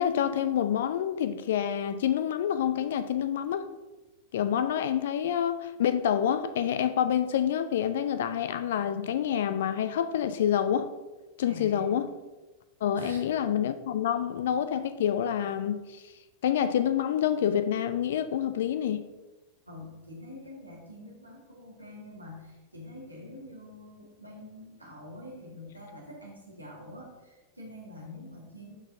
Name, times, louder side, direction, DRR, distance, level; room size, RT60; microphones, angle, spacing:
voice 1, 0.0-3.7 4.3-10.9 11.4-12.1 12.8-16.1 16.4-19.0, left 9 dB, 60° left, 0.3 m, -27 dB
voice 2, 11.5-11.9 13.0-13.2 19.7-28.7, left 1 dB, 85° right, 1.8 m, -45 dB
12.0 x 4.4 x 2.6 m
figure-of-eight pair, 90°, 0 cm